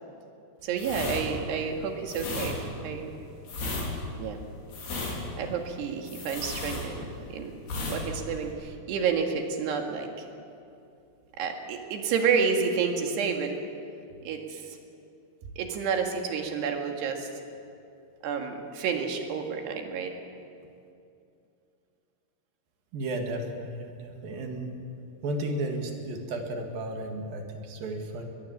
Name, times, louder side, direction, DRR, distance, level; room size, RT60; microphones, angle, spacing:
voice 1, 0.6-3.1 4.2-4.4 5.4-7.5 7.9-10.3 11.4-13.6 14.2-14.8 15.6-17.3 18.2-20.2, right 6 dB, 90° right, 3 dB, 4.1 m, -30 dB
sound 1, 0.7-7.3 7.6-8.0 8.3-8.5, left 3 dB, 75° left, 6.4 m, -34 dB
voice 2, 22.9-24.7 25.2-28.2, right 1 dB, 65° right, 3 dB, 3.7 m, -33 dB
22.0 x 21.0 x 7.4 m, 2.6 s
omnidirectional pair, 4.6 m